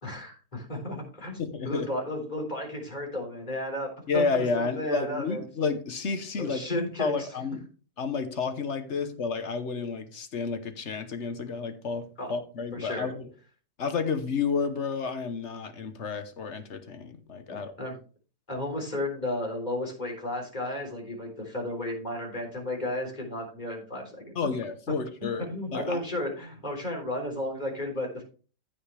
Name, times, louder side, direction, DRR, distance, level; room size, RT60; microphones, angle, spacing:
voice 1, 0.0-5.4 6.4-7.3 12.2-12.4 12.7-13.1 17.5-18.0 18.5-24.4 25.2-28.2, left 1 dB, 25° left, 3.7 m, -33 dB
voice 2, 1.4-1.9 4.1-7.7 8.0-13.3 13.8-17.7 24.3-26.0, left 5 dB, 45° left, 1.2 m, -31 dB
14.5 x 5.8 x 3.4 m
omnidirectional pair, 1.9 m